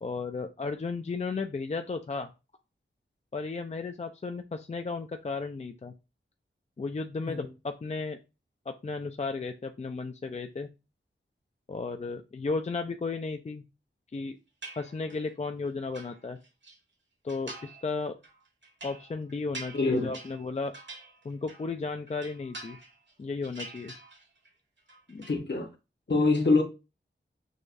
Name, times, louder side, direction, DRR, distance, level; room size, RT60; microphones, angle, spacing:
voice 1, 0.0-2.3 3.3-5.9 6.8-8.2 8.7-10.7 11.7-13.6 14.1-14.4 14.7-16.4 17.2-18.1 18.8-20.7 21.2-22.8 23.2-23.9 25.1-25.3, left 4 dB, 35° left, 0.4 m, -34 dB
sound 1, 14.6-15.3 15.7-16.8 17.3-17.9 18.2-21.8 22.1-23.1 23.4-24.5 24.8-25.4, right 2 dB, 65° right, 1.2 m, -46 dB
voice 2, 19.7-20.1 25.3-25.7 26.1-26.6, left 3 dB, 60° left, 1.0 m, -24 dB
6.3 x 2.3 x 2.6 m
wide cardioid pair, 65°, 21 cm